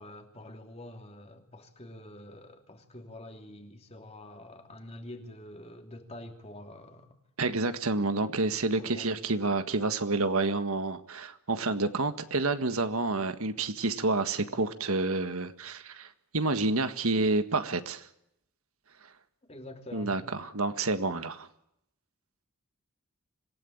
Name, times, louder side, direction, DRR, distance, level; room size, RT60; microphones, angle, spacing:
voice 1, 0.0-7.1 8.8-9.3 19.5-20.2, left 1 dB, 30° left, 3.0 m, -46 dB
voice 2, 7.4-18.1 19.9-21.5, right 3 dB, 75° right, 1.7 m, -29 dB
26.5 x 17.0 x 8.7 m
head